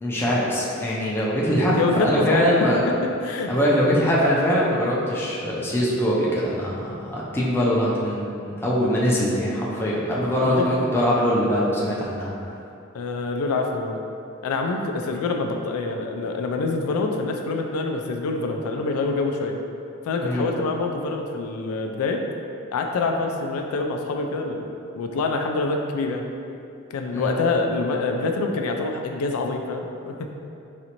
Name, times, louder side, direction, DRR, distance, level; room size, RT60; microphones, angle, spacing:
voice 1, 0.0-2.8 3.5-12.3 20.2-20.4 27.1-27.3, equal, 10° left, -6 dB, 0.5 m, -22 dB
voice 2, 1.7-2.5 3.0-3.6 10.3-10.7 12.9-14.0 14.4-19.6 20.1-22.2 22.7-26.3 26.9-30.3, left 3 dB, 90° left, 3 dB, 0.3 m, -26 dB
4.0 x 2.5 x 2.9 m, 2.6 s
head